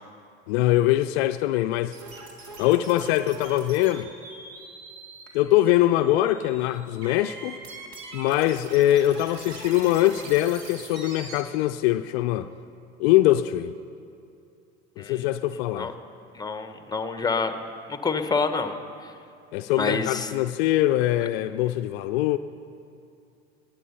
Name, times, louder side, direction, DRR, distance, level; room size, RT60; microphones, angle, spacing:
voice 1, 0.5-1.9 2.6-4.1 5.3-7.6 8.1-12.5 13.0-13.7 15.0-15.9 19.5-22.4, left 14 dB, 65° left, 0.5 m, -22 dB
sound 1, 1.9-11.4, right 3 dB, 55° right, 2.3 m, -43 dB
voice 2, 16.3-17.6 17.9-18.7 19.0-19.1 19.8-20.3, left 4 dB, 10° left, 1.1 m, -27 dB
19.0 x 9.6 x 5.6 m
hypercardioid pair, 75°, 34 cm